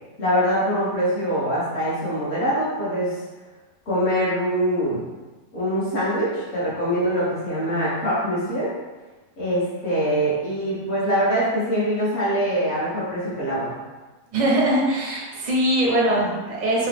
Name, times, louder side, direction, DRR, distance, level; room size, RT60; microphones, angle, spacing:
voice 1, 0.2-3.2 3.9-5.0 5.5-8.7 9.4-13.7, equal, 40° left, -10 dB, 1.6 m, -23 dB
voice 2, 14.3-16.9, right 1 dB, 35° right, -4 dB, 0.6 m, -21 dB
3.7 x 2.8 x 3.4 m, 1.2 s
omnidirectional pair, 1.9 m